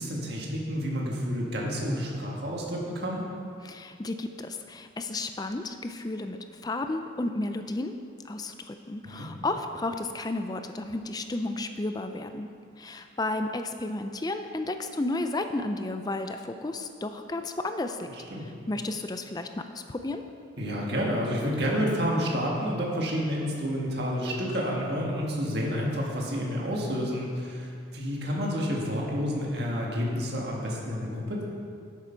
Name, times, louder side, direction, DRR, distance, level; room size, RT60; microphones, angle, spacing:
voice 1, 0.0-3.2 9.0-9.3 18.3-18.4 20.6-31.4, equal, 55° right, -2 dB, 1.7 m, -29 dB
voice 2, 3.6-6.4 6.6-7.9 8.2-12.5 12.8-18.1 18.7-20.2, left 2 dB, 20° left, 7 dB, 0.4 m, -32 dB
11.0 x 8.3 x 4.5 m, 2.3 s
head